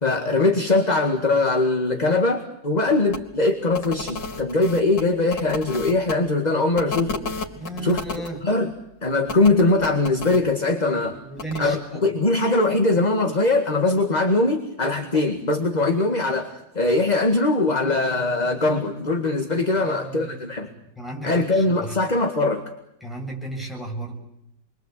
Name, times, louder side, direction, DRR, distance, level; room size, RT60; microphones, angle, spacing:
voice 1, 0.0-7.2 7.8-8.0 8.4-8.7 9.0-11.2 11.6-20.7 21.2-22.6, left 2 dB, 25° left, 5 dB, 2.0 m, -21 dB
sound 1, 3.1-3.2 3.7-6.1 6.8-8.3 9.3-10.4 11.4-11.6, left 3 dB, 85° left, 3.5 m, -32 dB
voice 2, 7.6-8.4 10.6-12.0 19.7-20.7 21.0-22.0 23.0-24.2, right 1 dB, ahead, -1 dB, 7.4 m, -35 dB
28.5 x 23.0 x 8.4 m, 0.82 s
omnidirectional pair, 1.9 m